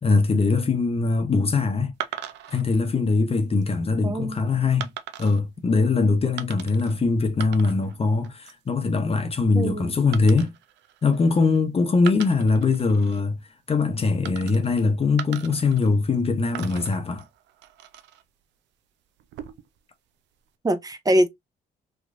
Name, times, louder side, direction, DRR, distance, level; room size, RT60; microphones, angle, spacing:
voice 1, 0.0-1.9 2.5-4.9 5.2-10.5 11.0-13.4 13.7-17.2, left 4 dB, 35° left, 0.8 m, -22 dB
sound 1, 2.0-2.6 3.3-3.7 4.8-5.4 6.4-6.9 7.2-8.0 8.2-8.7 10.1-11.6 12.0-13.2 14.2-14.8 15.2-16.2 16.5-18.2 19.2-19.8, right 11 dB, 85° right, 0.5 m, -39 dB
voice 2, 4.0-4.4 9.6-9.9 20.6-21.3, right 1 dB, 20° right, 0.6 m, -23 dB
3.1 x 3.1 x 2.5 m
cardioid pair, 80°, 18 cm